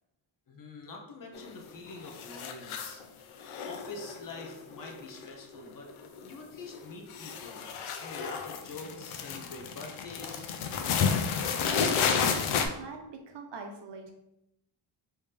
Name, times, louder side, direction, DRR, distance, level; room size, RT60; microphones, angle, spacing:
voice 1, 0.5-3.0 3.6-5.9 6.2-7.7 8.0-10.5, left 3 dB, 45° left, 1 dB, 0.7 m, -45 dB
sound 1, 1.4-1.8 2.0-3.0 3.4-5.6 5.9-6.3 6.6-12.7, left 6 dB, 90° left, 0.6 m, -31 dB
voice 2, 11.1-12.3 12.6-14.1, right 4 dB, 60° right, 3 dB, 0.8 m, -45 dB
3.3 x 2.8 x 3.4 m, 0.82 s
cardioid pair, 110°, 48 cm